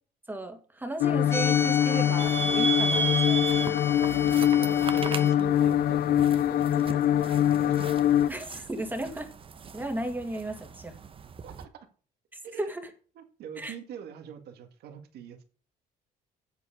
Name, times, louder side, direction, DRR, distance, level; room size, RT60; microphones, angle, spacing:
voice 1, 0.3-3.5 8.3-9.3 9.7-10.9 12.3-12.8 13.6-13.7, right 1 dB, 10° right, 6 dB, 2.0 m, -35 dB
sound 1, 1.0-8.3, left 11 dB, 60° left, 0.6 m, -24 dB
sound 2, 1.3-5.3, left 3 dB, 15° left, 1.3 m, -35 dB
sound 3, 2.2-11.7, right 5 dB, 30° right, 0.9 m, -35 dB
voice 2, 4.3-8.0 11.4-11.9 12.4-12.7 13.2-15.4, right 8 dB, 70° right, 7 dB, 1.9 m, -44 dB
8.1 x 7.7 x 5.0 m, 0.39 s
cardioid pair, 110°, 17 cm